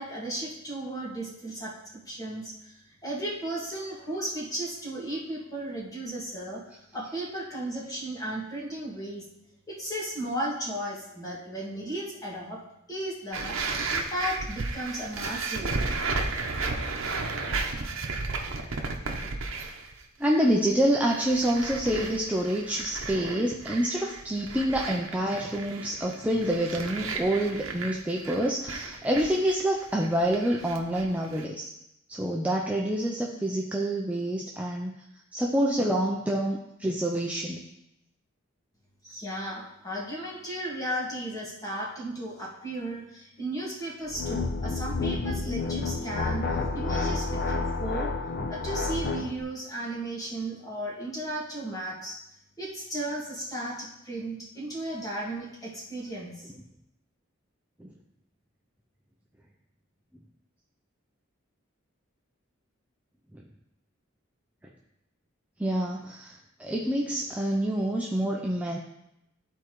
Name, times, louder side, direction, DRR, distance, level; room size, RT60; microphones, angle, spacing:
voice 1, 0.0-2.7 3.0-6.6 6.9-9.3 9.7-12.6 12.9-15.8 39.0-48.1 48.5-52.2 52.6-56.5, right 1 dB, 20° left, -5 dB, 1.9 m, -35 dB
sound 1, 13.3-19.9 20.2-20.6 21.0-31.5, right 3 dB, 80° right, 0.8 m, -34 dB
voice 2, 20.2-31.7 32.1-34.9 35.3-37.6 57.8-57.9 63.3-63.4 65.6-68.8, right 1 dB, 5° right, -1 dB, 0.5 m, -27 dB
sound 2, 44.1-49.3, left 3 dB, 50° left, 0.7 m, -30 dB
13.0 x 4.4 x 3.1 m, 0.84 s
head